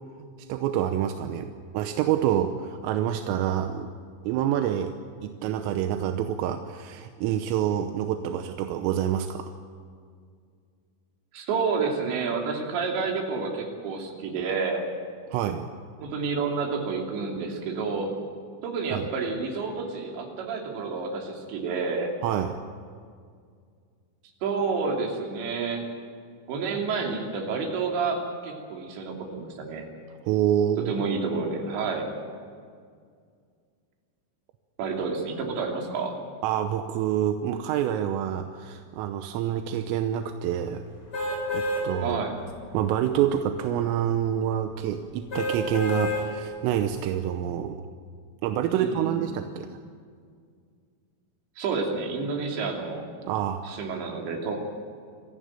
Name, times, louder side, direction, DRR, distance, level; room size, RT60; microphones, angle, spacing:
voice 1, 0.2-3.9 4.3-4.9 5.2-9.5 15.3-15.7 18.9-19.1 22.2-22.6 30.2-30.9 36.4-40.8 41.5-42.2 42.7-47.8 48.4-49.7 53.2-53.8, right 10 dB, 85° right, 7 dB, 3.5 m, -27 dB
voice 2, 11.3-14.8 16.0-18.2 18.6-22.1 24.4-25.9 26.5-29.8 30.8-32.1 34.8-36.2 42.0-42.3 48.7-49.3 51.6-53.0 53.6-54.5, right 4 dB, 65° right, 0 dB, 5.0 m, -29 dB
sound 1, 41.1-41.8 42.4-42.5 45.3-46.2 46.8-46.9, left 1 dB, 20° left, 7.1 m, -28 dB
25.5 x 15.0 x 9.1 m, 2.1 s
omnidirectional pair, 5.8 m